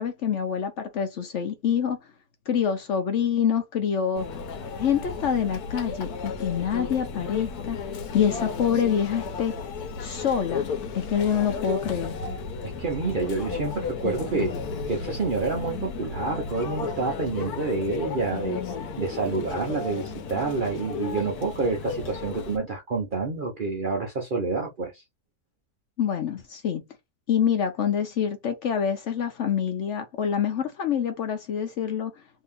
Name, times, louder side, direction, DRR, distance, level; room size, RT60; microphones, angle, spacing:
voice 1, 0.0-2.0 2.5-4.3 4.8-7.8 8.1-9.5 10.0-10.7 10.9-12.2 26.0-26.8 27.3-32.1, left 8 dB, 60° left, 0.8 m, -26 dB
Conversation / Chatter / Crowd, 4.1-22.6, left 5 dB, 85° left, 1.2 m, -34 dB
voice 2, 12.6-14.5 14.9-18.6 19.0-25.0, right 3 dB, 50° right, 0.6 m, -28 dB
2.8 x 2.7 x 3.5 m
omnidirectional pair, 1.6 m